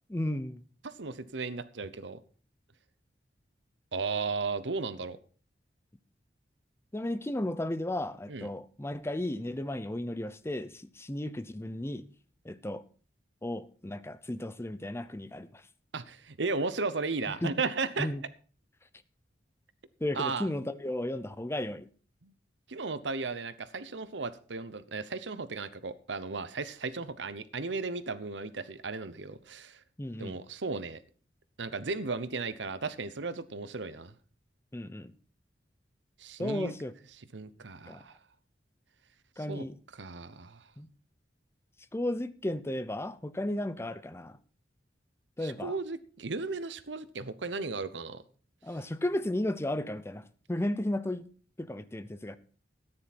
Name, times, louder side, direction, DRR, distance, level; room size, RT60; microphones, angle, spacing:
voice 1, 0.1-0.6 6.9-12.0 12.4-12.8 13.4-15.6 17.3-17.6 18.0-18.2 20.0-21.9 30.0-30.4 34.7-35.1 36.4-36.9 37.9-38.0 39.4-39.8 40.8-40.9 41.9-44.4 45.4-45.7 48.6-51.3 51.6-52.4, left 1 dB, 15° left, 0.7 m, -34 dB
voice 2, 0.8-2.2 3.9-5.2 8.3-8.5 15.9-18.1 20.1-20.5 22.2-22.3 22.7-29.8 30.2-31.0 31.6-34.1 36.2-36.7 37.3-38.1 39.5-39.7 39.9-40.6 45.4-48.2, right 4 dB, 80° right, 0.9 m, -35 dB
13.5 x 9.9 x 4.3 m
head